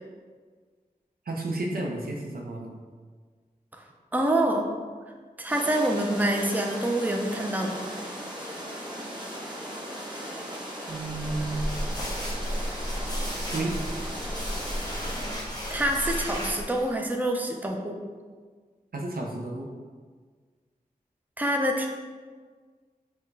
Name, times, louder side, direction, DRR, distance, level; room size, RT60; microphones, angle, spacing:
voice 1, 1.3-2.7 10.9-11.7 13.5-13.8 18.9-19.7, right 2 dB, 80° right, 0 dB, 0.6 m, -32 dB
voice 2, 4.1-4.7 5.4-7.9 15.7-18.0 21.4-21.9, right 1 dB, 10° right, 2 dB, 0.5 m, -26 dB
sound 1, 5.5-15.4, equal, 30° right, 1.0 m, -38 dB
sound 2, 11.0-16.9, equal, 25° left, 1.2 m, -33 dB
5.7 x 2.3 x 3.3 m, 1.5 s
cardioid pair, 50°, 15 cm